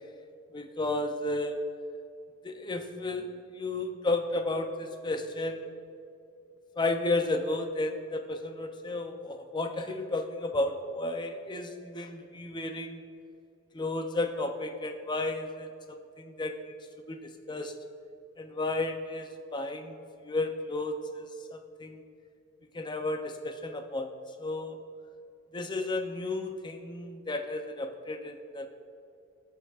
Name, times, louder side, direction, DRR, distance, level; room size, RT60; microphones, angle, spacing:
voice 1, 0.5-1.6 2.4-5.7 6.8-13.0 13.7-15.7 16.2-16.7 17.1-17.7 18.4-20.0 20.2-22.0 22.7-24.1 24.4-24.8 25.5-28.7, left 2 dB, 20° left, 6 dB, 0.5 m, -33 dB
16.0 x 6.7 x 2.4 m, 2.5 s
head